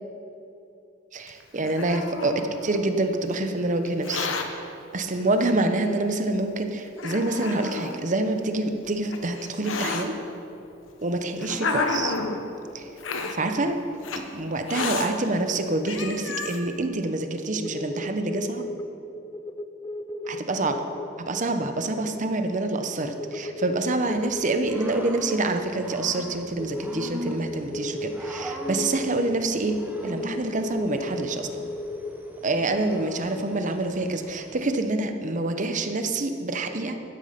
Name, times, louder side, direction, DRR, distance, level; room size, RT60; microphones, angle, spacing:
voice 1, 1.1-10.2 11.0-12.1 12.7-12.9 13.3-13.8 14.1-18.7 20.3-20.8 21.2-29.8 30.0-31.7 32.4-37.0, right 2 dB, 40° right, 7 dB, 0.9 m, -27 dB
Hiss, 1.3-2.9 3.9-4.5 5.4-5.5 6.3-6.4 7.0-8.0 8.8-10.1 10.9-12.4 13.0-13.4 14.0-14.2 14.7-15.1 15.6-15.7 15.9-16.6, left 4 dB, 90° left, 1.0 m, -30 dB
sound 1, 17.6-25.9 26.5-32.4, left 1 dB, 15° left, 0.4 m, -36 dB
Growling / Cricket, 23.9-34.9, equal, 10° right, 0.9 m, -41 dB
13.0 x 9.9 x 5.2 m, 2.8 s
head